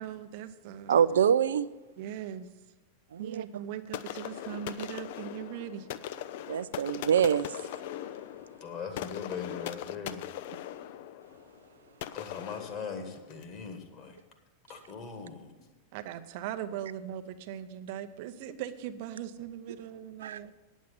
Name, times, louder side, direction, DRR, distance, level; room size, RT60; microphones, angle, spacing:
voice 1, 0.0-1.0 2.0-2.5 3.2-5.9 15.9-20.5, right 10 dB, 45° right, 0.7 m, -39 dB
voice 2, 0.9-1.7 3.1-3.4 6.5-7.5 20.2-20.4, right 8 dB, 65° right, 0.3 m, -25 dB
sound 1, 3.9-13.6, left 11 dB, 50° left, 0.4 m, -40 dB
voice 3, 8.6-10.2 12.1-14.2 14.7-15.5, left 6 dB, 35° left, 1.5 m, -40 dB
9.4 x 7.2 x 8.2 m
figure-of-eight pair, 90°, 0 cm